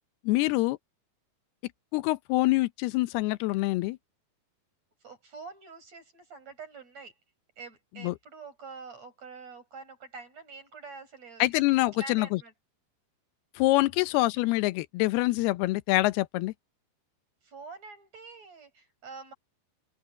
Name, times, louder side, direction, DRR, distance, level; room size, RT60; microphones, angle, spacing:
voice 1, 0.2-0.8 1.9-4.0 8.0-8.1 11.4-12.4 13.6-16.5, left 19 dB, 85° left, 2.8 m, -25 dB
voice 2, 5.0-7.1 7.6-11.4 11.8-12.5 14.0-14.1 17.4-19.3, right 4 dB, 40° right, 8.3 m, -46 dB
open air
omnidirectional pair, 4.5 m